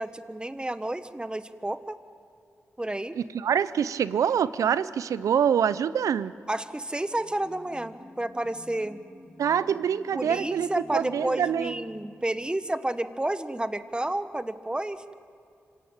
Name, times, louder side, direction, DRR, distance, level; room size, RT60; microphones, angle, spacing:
voice 1, 0.0-2.0 2.8-3.2 6.5-9.0 10.1-15.0, right 1 dB, 15° right, 11 dB, 1.4 m, -31 dB
voice 2, 3.1-6.3 9.4-11.7, right 8 dB, 80° right, 16 dB, 0.6 m, -25 dB
sound 1, 7.1-12.3, left 1 dB, 25° left, 4.7 m, -50 dB
26.0 x 17.0 x 8.9 m, 2.3 s
supercardioid pair, 40°, 6 cm